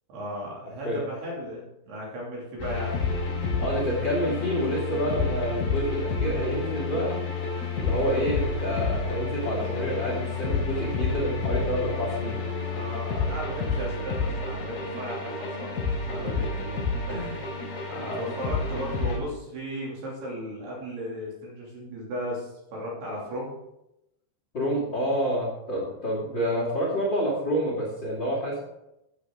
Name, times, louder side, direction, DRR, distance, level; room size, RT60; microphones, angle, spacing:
voice 1, 0.1-2.9 12.7-17.4 17.9-23.6, equal, 60° right, -4 dB, 4.6 m, -36 dB
sound 1, 2.6-19.2, left 4 dB, 55° left, 5.3 m, -29 dB
voice 2, 3.6-7.2 7.8-12.4 16.1-16.4 24.5-28.6, equal, 30° left, -4 dB, 2.8 m, -28 dB
13.5 x 8.9 x 3.8 m, 0.88 s
omnidirectional pair, 5.5 m